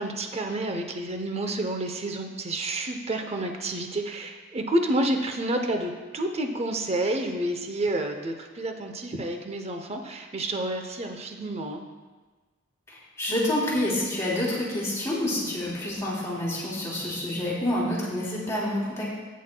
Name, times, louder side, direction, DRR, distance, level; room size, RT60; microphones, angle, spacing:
voice 1, 0.0-11.8, right 1 dB, 35° right, 5 dB, 0.7 m, -29 dB
voice 2, 12.9-19.1, left 1 dB, 15° left, -7 dB, 3.0 m, -28 dB
15.0 x 9.3 x 2.3 m, 1.3 s
head